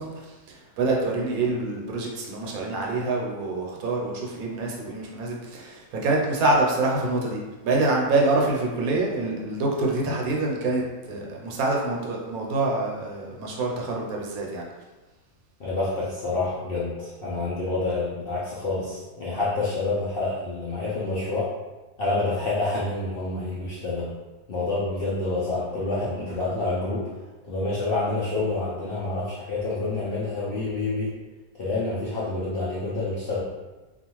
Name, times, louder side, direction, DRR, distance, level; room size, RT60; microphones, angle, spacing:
voice 1, 0.0-14.6, right 2 dB, 80° right, -1 dB, 1.0 m, -26 dB
voice 2, 15.6-21.5 22.0-24.1 24.5-27.1 27.5-31.1 31.6-33.4, left 2 dB, 65° left, -8 dB, 0.5 m, -28 dB
2.4 x 2.4 x 2.9 m, 1.2 s
omnidirectional pair, 1.5 m